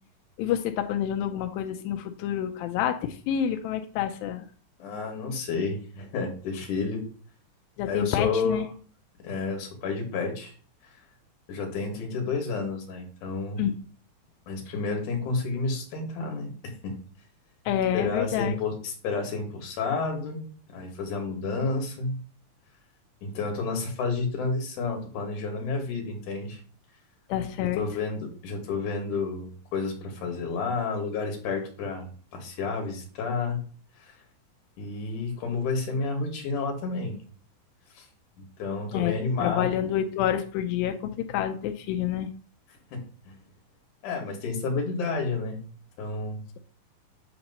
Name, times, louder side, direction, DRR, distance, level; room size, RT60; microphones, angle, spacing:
voice 1, 0.4-4.4 7.8-8.7 13.6-13.7 17.7-18.6 27.3-27.8 38.9-39.1 39.4-42.3, left 10 dB, 90° left, 6 dB, 2.4 m, -28 dB
voice 2, 4.8-7.0 7.9-8.6 9.2-10.5 11.5-13.6 14.5-16.9 17.9-20.4 20.7-22.2 23.2-26.6 27.6-33.6 34.0-34.1 34.8-37.2 37.9-38.1 38.4-39.7 42.9-43.4 44.0-45.6 46.0-46.4, left 4 dB, 65° left, 3 dB, 2.8 m, -30 dB
8.6 x 2.9 x 5.4 m, 0.43 s
omnidirectional pair, 4.0 m